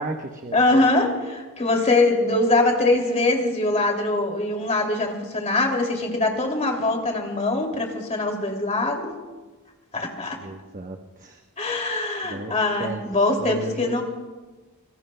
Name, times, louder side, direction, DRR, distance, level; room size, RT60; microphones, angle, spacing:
voice 1, 0.0-0.9 10.4-11.4 12.3-14.0, right 2 dB, 40° right, 3 dB, 1.0 m, -34 dB
voice 2, 0.5-9.1 9.9-10.4 11.6-14.0, left 2 dB, 30° left, 2 dB, 2.6 m, -22 dB
26.0 x 21.5 x 2.2 m, 1.2 s
head